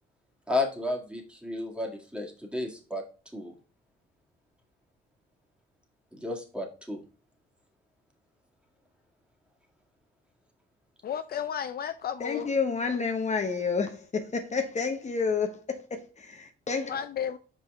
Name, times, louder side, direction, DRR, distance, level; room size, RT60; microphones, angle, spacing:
voice 1, 0.5-3.0 3.3-3.5 6.2-7.0, left 2 dB, 5° right, 1.9 m, -32 dB
voice 2, 11.0-12.5 16.9-17.4, left 8 dB, 50° left, 0.5 m, -33 dB
voice 3, 12.2-16.9, left 5 dB, 35° left, 1.0 m, -30 dB
5.5 x 5.1 x 3.5 m
cardioid pair, 90°, 20 cm